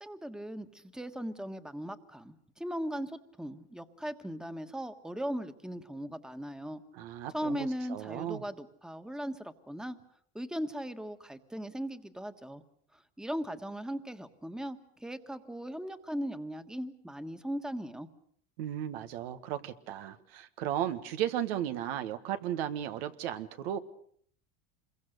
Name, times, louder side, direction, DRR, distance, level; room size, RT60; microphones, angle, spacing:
voice 1, 0.0-6.8 7.3-10.0 10.3-12.6 12.9-18.1, equal, ahead, 9 dB, 1.5 m, -38 dB
voice 2, 6.9-8.4 18.6-23.8, right 11 dB, 85° right, 9 dB, 1.5 m, -35 dB
26.5 x 22.5 x 6.6 m, 0.63 s
supercardioid pair, 110°, 29 cm